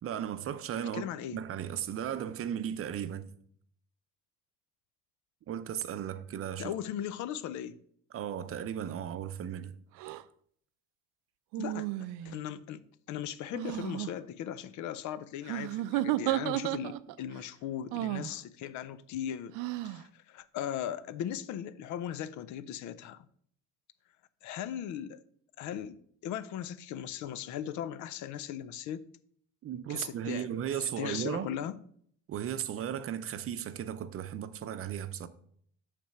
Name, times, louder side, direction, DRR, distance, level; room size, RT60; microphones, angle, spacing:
voice 1, 0.0-1.1 1.3-3.3 5.5-6.7 8.1-9.7 29.6-31.6 32.3-35.3, right 9 dB, 45° right, 0.7 m, -36 dB
voice 2, 0.9-1.4 6.6-7.8 11.6-19.5 19.8-23.3 24.4-25.2 25.6-29.0 29.9-30.5 31.0-31.8, left 10 dB, 70° left, 0.6 m, -38 dB
sound 1, 10.0-10.2 11.5-12.4 13.5-14.1 15.5-17.2 17.9-18.4 19.5-20.0, right 16 dB, 80° right, 0.5 m, -33 dB
8.7 x 3.3 x 6.7 m
cardioid pair, 105°, 31 cm